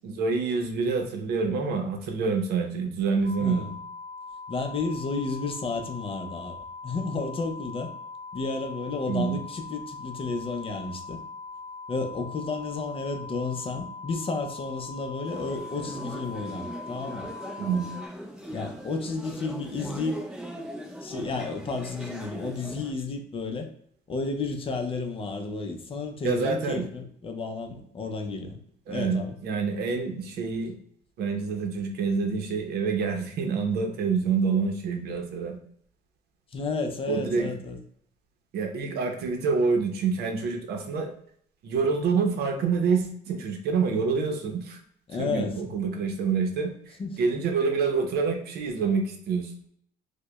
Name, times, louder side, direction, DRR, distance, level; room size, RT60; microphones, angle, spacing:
voice 1, 0.0-3.6 9.1-9.4 17.6-17.9 26.2-26.8 28.9-30.7 31.2-35.6 37.1-37.5 38.5-41.1 41.6-44.8 45.2-49.5, right 5 dB, 70° right, 4 dB, 0.7 m, -27 dB
sound 1, 3.2-18.1, left 4 dB, 35° right, 0.9 m, -41 dB
voice 2, 4.5-7.9 8.3-11.2 11.9-17.3 18.5-20.2 21.0-23.7 24.1-28.6 28.9-29.4 36.5-37.8 45.1-45.5 47.0-47.2, left 3 dB, 35° left, 4 dB, 0.5 m, -32 dB
sound 2, 15.2-22.9, equal, 5° right, 1.3 m, -40 dB
4.8 x 2.2 x 2.2 m, 0.65 s
cardioid pair, 110°, 17 cm